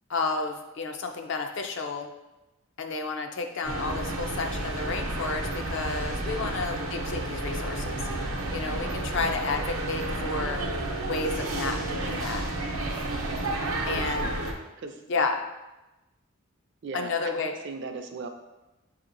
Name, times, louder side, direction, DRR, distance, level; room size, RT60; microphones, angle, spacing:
voice 1, 0.1-2.1 2.8-7.9 8.5-10.6 11.1-12.4 13.9-14.3 15.1-15.4 16.9-17.5, left 4 dB, 60° left, 4 dB, 0.5 m, -31 dB
sound 1, 3.6-14.5, right 2 dB, 80° right, 0.7 m, -31 dB
voice 2, 9.2-9.6 13.8-14.4 14.8-15.0 16.8-18.3, right 4 dB, 55° right, 6 dB, 0.4 m, -39 dB
6.9 x 2.8 x 2.6 m, 1.0 s
head